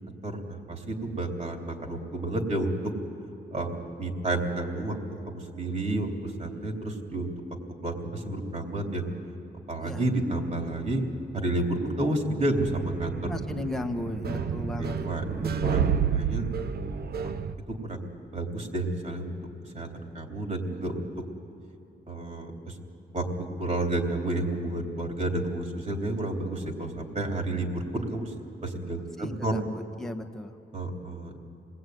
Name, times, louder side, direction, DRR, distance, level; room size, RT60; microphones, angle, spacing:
voice 1, 0.0-2.9 3.5-5.0 5.2-7.3 7.8-9.0 9.7-13.3 14.3-14.5 14.8-16.5 17.2-17.3 17.8-18.1 18.3-19.3 19.7-21.1 22.1-22.7 23.1-28.3 28.6-29.6 30.7-31.4, right 1 dB, 40° right, 2 dB, 3.3 m, -31 dB
sound 1, 12.5-17.5, right 7 dB, 60° right, 0.9 m, -30 dB
voice 2, 13.2-15.1 15.3-15.4 29.2-30.6, left 1 dB, ahead, 4 dB, 1.4 m, -35 dB
27.0 x 20.0 x 9.4 m, 2.7 s
cardioid pair, 120°, 18 cm